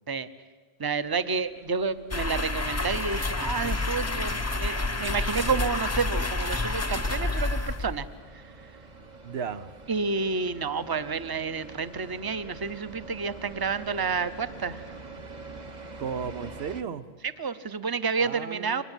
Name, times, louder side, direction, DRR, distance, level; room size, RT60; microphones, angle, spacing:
voice 1, 0.8-8.1 8.3-8.4 9.9-14.8 17.4-18.8, right 5 dB, 25° right, 12 dB, 0.7 m, -30 dB
sound 1, 1.0-16.8, right 3 dB, 45° right, 1.3 m, -46 dB
sound 2, 2.1-8.1, left 2 dB, 20° left, 0.7 m, -29 dB
voice 2, 9.2-9.7 16.0-17.1 18.2-18.8, right 6 dB, 90° right, 13 dB, 1.2 m, -34 dB
24.0 x 19.5 x 9.0 m, 1.5 s
omnidirectional pair, 1.0 m